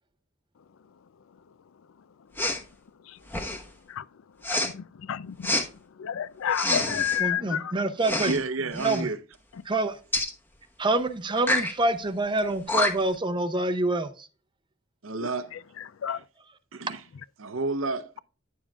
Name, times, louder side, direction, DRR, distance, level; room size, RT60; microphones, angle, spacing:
Respiratory sounds, 2.4-2.6 3.3-3.7 4.4-4.7 5.4-5.7 6.5-7.2 8.0-8.4 8.7-9.0 10.1-10.3 11.4-11.7 12.4-12.5 12.7-13.2, left 1 dB, 10° left, 1.1 m, -27 dB
voice 1, 4.5-5.6 6.0-7.7 15.2-15.3 16.0-16.2, left 9 dB, 80° left, 0.4 m, -30 dB
voice 2, 7.2-8.4 8.7-9.1 9.6-10.0 10.8-14.3, right 2 dB, 25° right, 0.6 m, -26 dB
voice 3, 8.2-9.2 15.0-15.5 16.1-16.2 16.7-17.0 17.4-18.1, right 3 dB, 80° right, 0.7 m, -30 dB
10.0 x 7.3 x 2.4 m
head